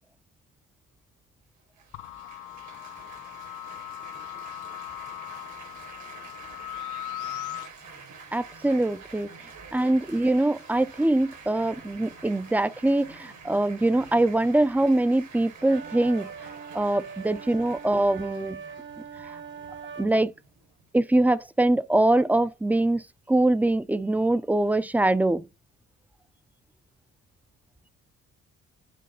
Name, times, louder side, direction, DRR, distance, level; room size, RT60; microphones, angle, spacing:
Laughter / Applause / Chatter, 1.8-20.9, right 4 dB, 75° right, 4.4 m, -48 dB
sound 1, 1.9-7.7, left 13 dB, 80° left, 0.6 m, -39 dB
voice 1, 8.3-9.3 9.7-16.3 16.7-18.6 19.2-19.3 20.0-20.3 20.9-25.5, right 1 dB, 5° right, 0.4 m, -23 dB
sound 2, 15.6-20.1, right 7 dB, 40° right, 0.8 m, -41 dB
7.8 x 3.2 x 5.1 m
cardioid pair, 90°, 30 cm